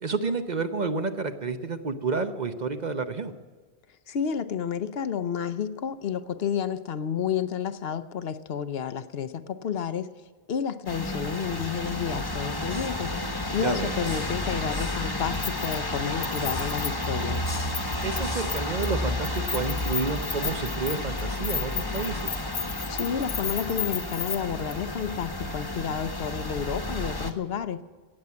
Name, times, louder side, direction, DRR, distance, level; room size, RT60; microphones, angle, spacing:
voice 1, 0.0-3.3 13.6-13.9 18.0-22.4, right 4 dB, 45° right, 9 dB, 0.9 m, -30 dB
voice 2, 4.1-10.1 10.5-17.5 22.9-27.8, left 7 dB, 65° left, 12 dB, 0.9 m, -31 dB
sound 1, 10.9-27.3, left 1 dB, 20° left, 1.2 m, -31 dB
Keys jangling, 15.3-16.0 16.2-18.2 18.5-18.9 19.2-24.4 24.7-24.8, left 7 dB, 85° left, 1.4 m, -33 dB
17.5 x 7.3 x 9.5 m, 1.5 s
omnidirectional pair, 1.1 m